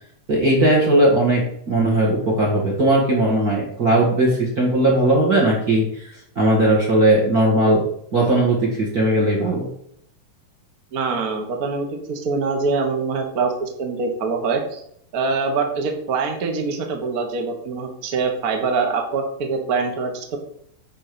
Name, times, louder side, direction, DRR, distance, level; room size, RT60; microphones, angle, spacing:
voice 1, 0.3-5.9 6.3-7.8 8.1-9.7, right 1 dB, 35° right, -1 dB, 1.8 m, -18 dB
voice 2, 10.9-14.8 15.1-20.4, right 4 dB, 80° right, 3 dB, 0.8 m, -24 dB
9.9 x 4.2 x 6.9 m, 0.67 s
omnidirectional pair, 4.0 m